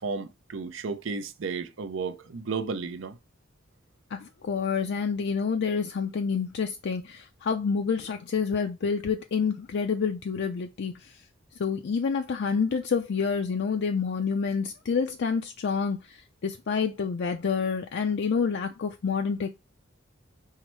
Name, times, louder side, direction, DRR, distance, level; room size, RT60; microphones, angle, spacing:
voice 1, 0.0-3.2, right 4 dB, 75° right, 0.6 m, -33 dB
voice 2, 4.1-11.2 11.6-19.5, left 5 dB, 60° left, 0.4 m, -28 dB
5.6 x 2.1 x 4.5 m
head